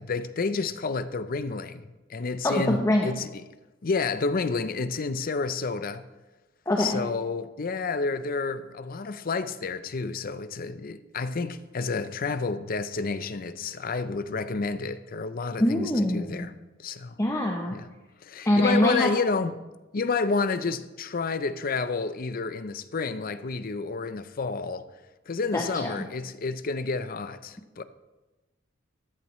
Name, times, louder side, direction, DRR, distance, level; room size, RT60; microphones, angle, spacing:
voice 1, 0.0-3.4 3.8-6.0 6.8-16.5 16.8-17.2 17.7-17.9 18.2-19.6 19.9-24.9 25.3-27.8, left 4 dB, 45° left, 0.5 m, -30 dB
voice 2, 2.4-3.1 6.7-7.0 15.6-16.4 17.2-17.8 18.5-19.1 25.5-26.0, left 1 dB, 15° left, 0.8 m, -24 dB
14.5 x 10.5 x 3.1 m
head